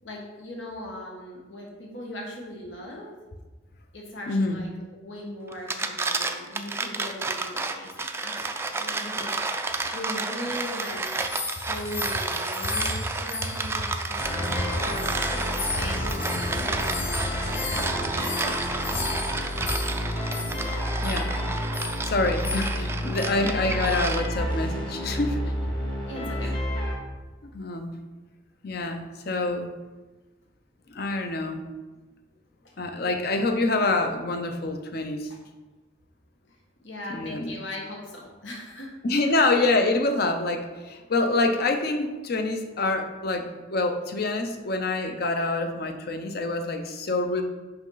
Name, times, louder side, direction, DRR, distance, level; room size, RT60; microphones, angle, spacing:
voice 1, 0.0-3.1 3.9-11.0 11.6-14.5 14.8-15.2 15.6-17.3 23.4-23.9 26.1-26.6 35.3-35.4 36.8-38.9 39.3-39.5, left 1 dB, 90° left, -1 dB, 1.4 m, -39 dB
voice 2, 4.3-4.6 17.6-18.1 18.9-19.0 21.0-21.4 22.0-25.4 26.2-26.5 27.4-28.0 28.6-29.7 30.9-31.6 32.8-35.3 37.1-37.5 39.0-47.4, left 2 dB, 55° left, 5 dB, 0.7 m, -26 dB
sound 1, 5.5-24.5, right 3 dB, 15° right, 0.3 m, -31 dB
sound 2, 10.3-14.5 14.8-20.7 21.0-21.3 21.7-22.1 22.4-22.9 23.1-23.3 23.9-24.1, left 4 dB, 70° left, 1.1 m, -37 dB
sound 3, 14.2-27.0, left 1 dB, 25° left, 1.2 m, -30 dB
5.8 x 5.5 x 3.9 m, 1.2 s
head